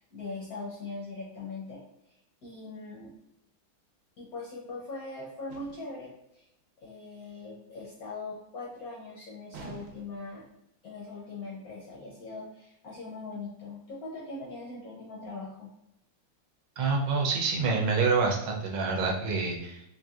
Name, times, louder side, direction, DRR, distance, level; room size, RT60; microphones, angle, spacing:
voice 1, 0.0-1.8 2.1-3.2 4.2-6.5 6.8-10.5 10.8-15.7, left 3 dB, 65° left, -4 dB, 0.9 m, -41 dB
sound 1, 5.5-6.0 9.5-10.3, right 4 dB, 75° right, 1.2 m, -47 dB
voice 2, 16.8-19.8, right 4 dB, 90° right, 0 dB, 1.6 m, -27 dB
4.6 x 2.6 x 2.3 m, 0.83 s
omnidirectional pair, 2.2 m